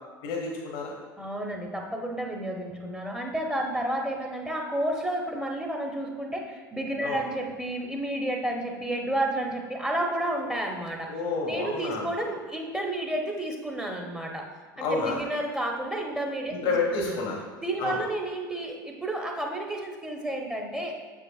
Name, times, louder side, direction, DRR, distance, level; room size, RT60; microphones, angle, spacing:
voice 1, 0.2-0.9 7.0-7.2 11.1-12.1 14.8-15.2 16.5-17.4 17.8-18.0, left 3 dB, 65° left, 0 dB, 1.1 m, -29 dB
voice 2, 1.2-11.1 11.5-14.5 14.8-17.2 17.6-21.0, right 1 dB, 5° right, 1 dB, 0.9 m, -31 dB
7.5 x 6.5 x 2.4 m, 1.5 s
hypercardioid pair, 75°, 12 cm